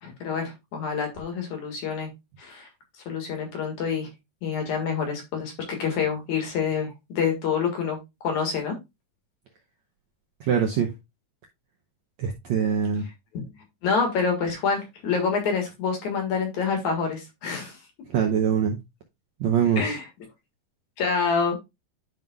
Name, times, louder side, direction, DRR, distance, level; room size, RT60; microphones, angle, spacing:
voice 1, 0.0-2.1 2.4-2.7 3.1-4.1 4.4-8.0 8.2-8.7 13.3-13.5 13.8-17.8 19.8-20.0 21.0-21.6, left 5 dB, 60° left, 2.8 m, -27 dB
voice 2, 10.4-10.9 12.2-13.1 18.1-18.8 19.4-19.9, right 7 dB, 70° right, 1.7 m, -23 dB
11.0 x 5.4 x 2.3 m
omnidirectional pair, 4.3 m